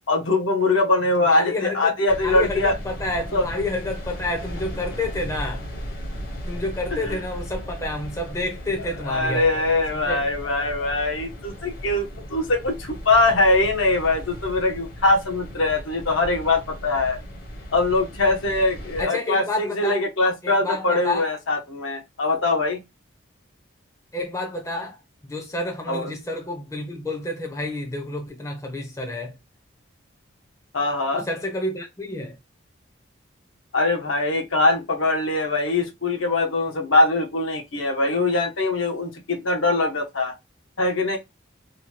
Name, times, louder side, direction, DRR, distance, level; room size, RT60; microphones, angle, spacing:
voice 1, 0.1-2.7 3.3-3.5 6.9-7.2 9.0-17.2 17.7-22.8 25.9-26.1 30.7-31.2 33.7-40.3 40.8-41.2, left 2 dB, 80° left, 0.9 m, -22 dB
voice 2, 1.2-2.0 2.2-5.7 6.5-9.6 9.9-10.2 19.0-20.1 20.4-21.3 24.1-25.0 25.3-29.3 31.1-32.4, left 2 dB, 15° left, 0.5 m, -29 dB
sound 1, 2.1-19.0, equal, 50° left, 0.9 m, -36 dB
2.8 x 2.2 x 3.0 m
head